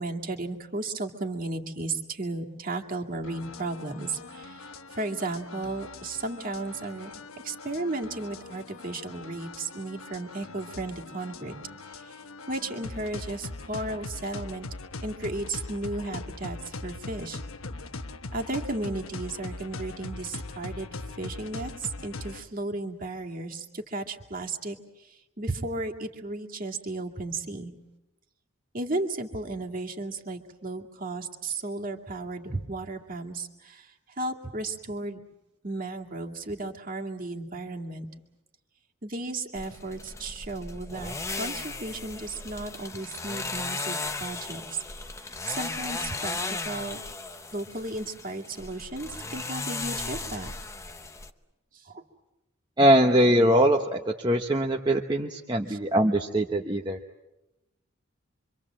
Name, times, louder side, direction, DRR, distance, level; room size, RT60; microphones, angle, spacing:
voice 1, 0.0-7.1 7.4-11.6 12.0-12.2 12.5-14.7 15.0-17.4 18.3-24.8 25.4-27.7 28.7-33.9 34.2-35.2 35.6-38.1 39.0-44.8 45.5-47.0 47.5-50.5 51.8-52.0 55.7-55.8, right 2 dB, 40° right, 1 dB, 2.3 m, -34 dB
sound 1, 3.2-22.4, left 3 dB, 90° left, 1.2 m, -41 dB
sound 2, 39.6-51.3, left 3 dB, 15° left, 0.9 m, -36 dB
voice 2, 52.8-57.0, right 1 dB, 20° right, 2 dB, 1.0 m, -22 dB
26.5 x 25.0 x 7.5 m, 0.99 s
head